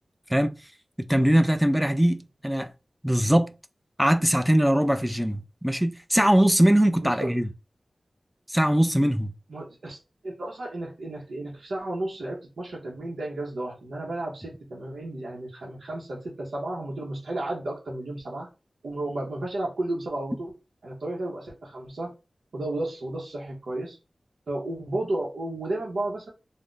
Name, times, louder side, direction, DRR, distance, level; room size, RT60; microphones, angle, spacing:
voice 1, 1.1-2.7 3.0-3.5 4.0-7.5 8.5-9.3, equal, 5° right, 0.4 m, -21 dB
voice 2, 7.0-7.3 9.5-10.0 10.2-18.5 18.8-20.5 20.8-22.1 22.5-24.0 24.5-26.3, right 1 dB, 85° right, 0.7 m, -33 dB
2.4 x 2.0 x 3.7 m
cardioid pair, 50°, 0 cm